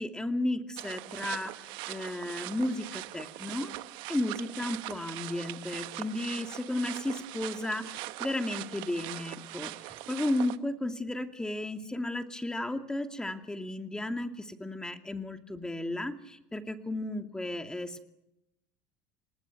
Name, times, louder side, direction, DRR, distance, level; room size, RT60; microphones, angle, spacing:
voice 1, 0.0-3.7 4.1-18.1, left 1 dB, 10° left, 6 dB, 2.4 m, -34 dB
sound 1, 0.8-10.6, right 18 dB, 65° right, 1.2 m, -41 dB
28.0 x 19.5 x 9.2 m, 0.90 s
supercardioid pair, 100°, 9 cm